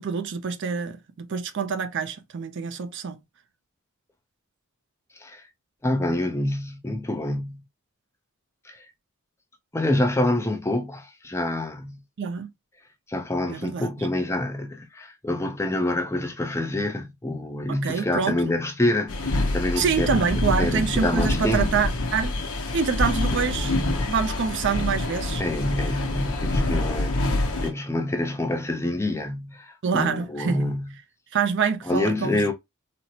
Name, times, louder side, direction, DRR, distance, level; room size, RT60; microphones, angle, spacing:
voice 1, 0.0-3.2 12.2-12.5 13.5-14.1 17.7-18.5 19.8-22.3 22.7-23.8 24.1-25.4 29.8-30.7 31.3-32.4, right 6 dB, 55° right, 0.5 m, -26 dB
voice 2, 5.8-7.6 8.6-8.8 9.7-12.0 13.1-21.8 23.3-23.8 25.4-30.9 31.9-32.5, left 1 dB, 10° left, 0.5 m, -27 dB
sound 1, 19.1-27.7, left 2 dB, 75° left, 0.8 m, -26 dB
4.1 x 2.1 x 2.7 m
head